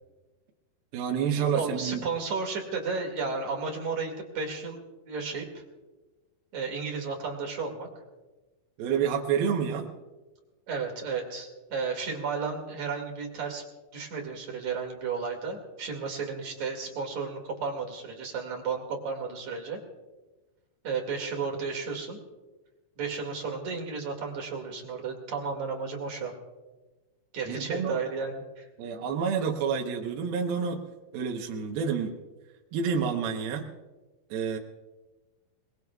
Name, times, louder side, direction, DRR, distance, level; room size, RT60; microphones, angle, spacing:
voice 1, 0.9-2.0 8.8-9.9 27.5-28.0 28.8-30.8 31.1-32.1 32.7-33.6 34.3-34.6, right 6 dB, 75° right, 1 dB, 2.9 m, -28 dB
voice 2, 1.5-5.6 6.5-7.9 10.7-13.6 13.9-19.8 20.8-22.2 23.0-26.3 27.3-28.7, right 5 dB, 50° right, 1 dB, 3.2 m, -33 dB
28.0 x 20.5 x 2.4 m, 1.2 s
omnidirectional pair, 4.5 m